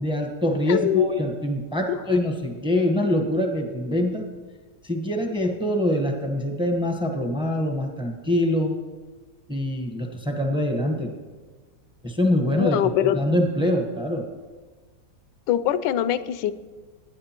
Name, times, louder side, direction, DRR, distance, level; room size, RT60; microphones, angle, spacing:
voice 1, 0.0-4.3 4.8-8.7 9.5-11.2 12.0-12.8 13.1-14.3, left 1 dB, 5° right, 3 dB, 0.6 m, -24 dB
voice 2, 0.7-1.1 1.9-2.0 12.6-13.2 15.5-16.5, left 11 dB, 80° left, 14 dB, 1.2 m, -22 dB
20.0 x 9.7 x 2.9 m, 1.4 s
omnidirectional pair, 2.0 m